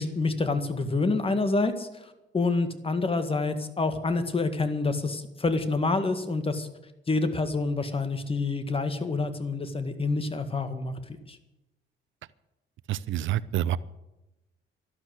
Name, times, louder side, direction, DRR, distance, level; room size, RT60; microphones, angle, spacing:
voice 1, 0.0-6.7 7.1-11.4, left 3 dB, 30° left, 9 dB, 1.9 m, -27 dB
voice 2, 12.9-13.8, right 12 dB, 75° right, 18 dB, 0.7 m, -27 dB
12.5 x 12.0 x 8.1 m, 0.98 s
cardioid pair, 90°, 20 cm